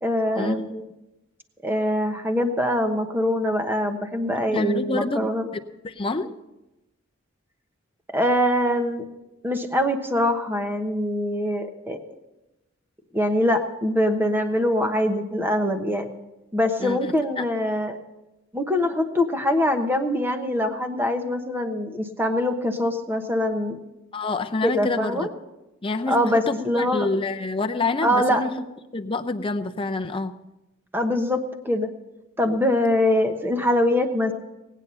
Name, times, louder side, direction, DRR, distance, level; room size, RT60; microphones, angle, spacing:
voice 1, 0.0-0.8 1.6-5.4 8.1-9.0 9.4-12.0 13.1-16.1 16.5-18.0 18.5-23.8 24.6-25.3 26.1-27.1 28.0-28.4 30.9-31.9 32.4-34.3, left 1 dB, 10° right, 6 dB, 1.1 m, -23 dB
voice 2, 4.2-5.3 5.5-6.4 16.8-17.4 24.1-25.3 25.8-28.5 28.9-30.3, left 3 dB, 25° left, 6 dB, 0.7 m, -27 dB
18.0 x 9.2 x 5.5 m, 0.99 s
head